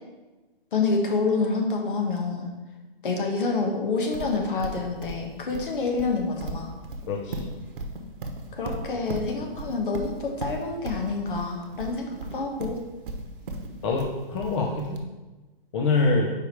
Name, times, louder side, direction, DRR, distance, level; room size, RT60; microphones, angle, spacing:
voice 1, 0.7-2.5 3.0-6.7 8.5-12.8, left 4 dB, 60° left, 2 dB, 1.3 m, -27 dB
Livestock farm animals working animals, 4.1-15.0, right 2 dB, 60° right, 1.0 m, -36 dB
voice 2, 7.1-7.4 13.8-15.0 15.7-16.3, left 3 dB, 30° left, 0 dB, 0.7 m, -25 dB
5.0 x 4.7 x 4.7 m, 1.1 s
hypercardioid pair, 135°, 30 cm